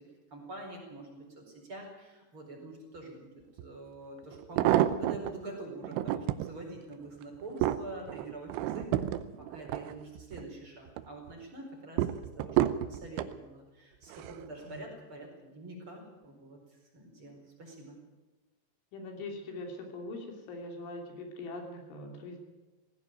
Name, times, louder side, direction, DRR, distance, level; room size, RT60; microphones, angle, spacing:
voice 1, 0.3-3.3 3.6-8.9 9.5-12.6 12.9-18.0, right 2 dB, 30° right, 0 dB, 5.1 m, -45 dB
sound 1, 3.6-3.7 4.3-5.3 5.8-6.5 7.1-10.5 10.9-11.3 12.0-13.4 14.1-14.5 14.8-14.9, right 13 dB, 80° right, 3.0 m, -30 dB
voice 2, 8.9-9.2 14.6-14.8 18.9-22.4, left 2 dB, 80° left, 3 dB, 5.4 m, -42 dB
18.5 x 16.0 x 9.2 m, 1.2 s
omnidirectional pair, 5.5 m